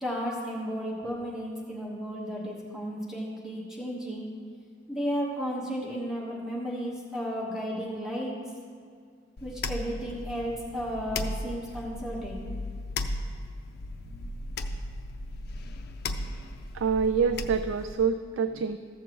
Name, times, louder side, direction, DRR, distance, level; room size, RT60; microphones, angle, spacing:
voice 1, 0.0-4.3 4.9-8.3 9.4-12.4, equal, 5° right, -5 dB, 1.3 m, -33 dB
sound 1, 9.4-17.9, left 2 dB, 55° left, 0.5 m, -36 dB
voice 2, 16.7-18.8, right 6 dB, 85° right, 9 dB, 0.3 m, -26 dB
14.5 x 7.1 x 3.0 m, 2.1 s
head